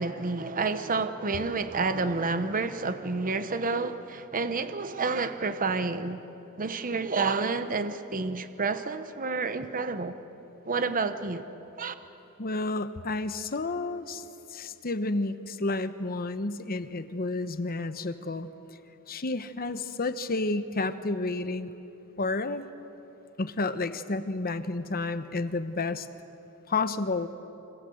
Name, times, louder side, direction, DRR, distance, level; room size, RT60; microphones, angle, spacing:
voice 1, 0.0-6.2 6.6-10.1 10.7-11.4 11.8-11.9, right 4 dB, 40° right, 0.9 m, -29 dB
voice 2, 12.4-14.2 14.5-18.5 19.1-21.7 22.2-22.6 23.4-26.1 26.7-27.3, left 3 dB, 40° left, 1.0 m, -30 dB
29.5 x 25.0 x 7.9 m
head